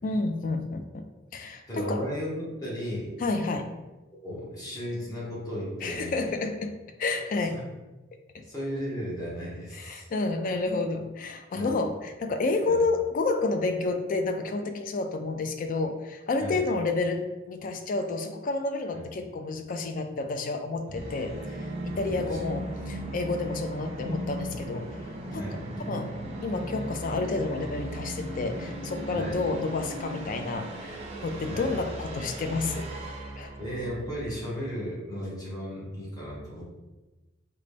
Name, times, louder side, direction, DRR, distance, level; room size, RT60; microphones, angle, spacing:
voice 1, 0.0-1.0 1.3-2.0 3.2-3.7 5.8-6.7 7.0-7.6 8.1-8.2 9.7-21.3 21.8-24.9 25.3-25.4 25.8-26.1 26.4-32.9 33.2-33.5, left 3 dB, 45° left, 6 dB, 0.3 m, -30 dB
voice 2, 1.7-3.1 4.2-6.2 7.4-7.6 8.5-10.1 11.5-11.7 12.7-12.8 16.4-16.6 18.9-19.1 21.9-22.4 25.3-25.6 29.1-29.4 31.5-31.7 33.6-36.6, equal, 20° left, -6 dB, 1.1 m, -35 dB
Musical instrument, 20.9-34.6, right 1 dB, 30° right, 0.5 m, -37 dB
3.9 x 2.2 x 3.3 m, 1.1 s
head